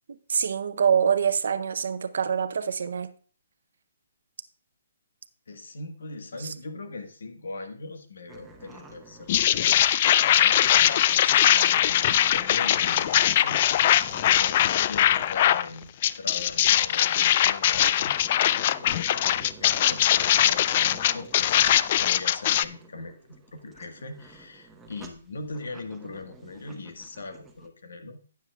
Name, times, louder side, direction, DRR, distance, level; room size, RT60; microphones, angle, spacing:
voice 1, 0.1-3.1, right 7 dB, 70° right, 0.7 m, -25 dB
voice 2, 5.5-28.2, left 2 dB, 80° left, 1.5 m, -41 dB
sound 1, 8.3-10.7 11.0-15.4 15.8-16.3 16.7-16.8 17.2-17.3 17.9-22.0 22.4-27.7, right 3 dB, 5° right, 1.1 m, -49 dB
sound 2, 9.3-15.7 16.0-22.6, left 11 dB, 40° left, 0.3 m, -21 dB
12.5 x 8.8 x 2.3 m
hypercardioid pair, 155°, 0 cm